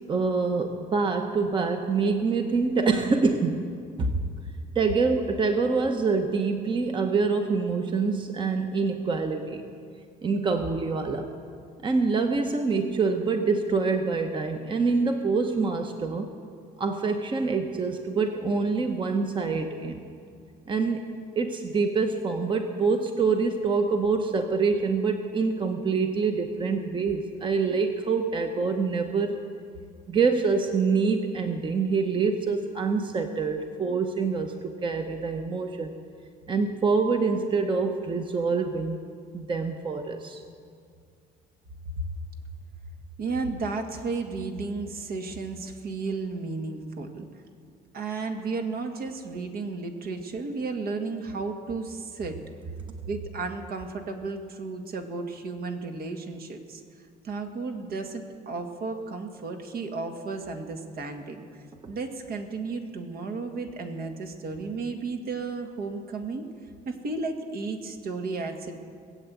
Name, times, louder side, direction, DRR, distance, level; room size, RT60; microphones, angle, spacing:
voice 1, 0.1-3.7 4.0-4.2 4.7-9.6 10.2-11.3 11.8-16.3 16.8-20.0 20.7-21.1 21.4-29.4 30.1-36.0 36.5-39.0 39.3-40.4 61.8-61.9, right 4 dB, 30° right, 5 dB, 1.0 m, -26 dB
voice 2, 43.2-47.3 47.9-52.4 53.1-56.8 57.2-66.5 66.9-68.8, right 3 dB, 60° right, 4 dB, 1.8 m, -33 dB
20.0 x 7.9 x 8.4 m, 2.2 s
cardioid pair, 110°, 17 cm